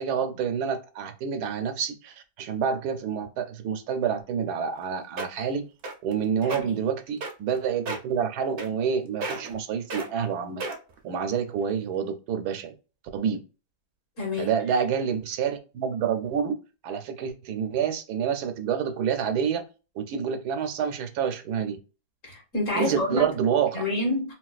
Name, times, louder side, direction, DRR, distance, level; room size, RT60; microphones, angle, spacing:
voice 1, 0.0-5.7 6.0-10.6 11.0-12.7 13.1-13.4 14.4-19.7 20.0-21.8 22.7-23.8, right 7 dB, 85° right, 1.1 m, -28 dB
sound 1, 4.7-4.8 5.2-5.5 5.8-6.1 6.4-6.6 7.2-7.6 7.9-8.1 8.6-8.9 9.2-9.6 9.9-10.1 10.6-11.0 11.6-11.7, right 3 dB, 70° right, 0.5 m, -33 dB
voice 2, 6.4-6.8 14.2-14.5 22.2-23.3 23.7-24.3, left 2 dB, 55° left, 1.6 m, -28 dB
3.9 x 2.3 x 2.4 m
omnidirectional pair, 1.6 m